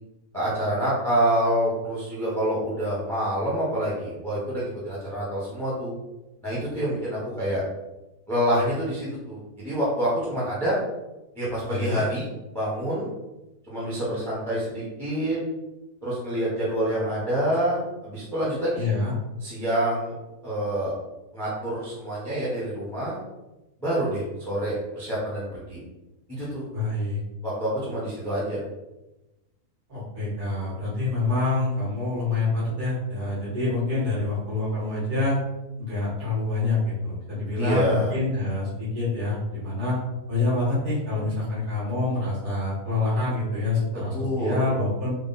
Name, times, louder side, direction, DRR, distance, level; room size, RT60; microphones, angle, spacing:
voice 1, 0.3-5.9 6.4-7.6 8.3-10.8 11.3-13.1 13.7-15.4 16.0-18.9 19.4-20.2 20.4-20.9 21.3-23.2 23.8-25.8 26.3-26.6 27.4-28.6 37.6-38.1 44.1-44.6, right 1 dB, ahead, -8 dB, 0.9 m, -27 dB
voice 2, 11.6-12.0 18.7-19.1 26.7-27.2 29.9-35.4 35.8-40.0 40.3-45.2, left 2 dB, 70° right, -8 dB, 2.0 m, -26 dB
4.0 x 2.4 x 4.0 m, 1.0 s
omnidirectional pair, 1.7 m